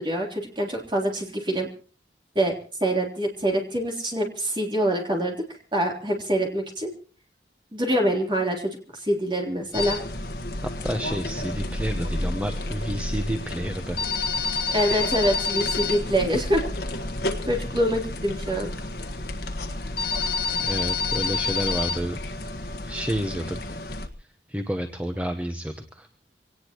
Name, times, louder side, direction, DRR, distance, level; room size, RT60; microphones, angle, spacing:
voice 1, 0.0-1.7 2.4-2.5 2.8-5.4 5.7-6.9 7.7-10.0 14.7-16.6 17.5-18.7, right 1 dB, 25° right, 0 dB, 3.5 m, -25 dB
sound 1, 9.7-24.1, left 3 dB, 60° left, 1.5 m, -29 dB
voice 2, 10.6-14.0 20.6-22.2 22.9-23.8 24.2-26.1, equal, 10° right, 6 dB, 1.0 m, -30 dB
25.0 x 18.5 x 3.0 m, 0.38 s
head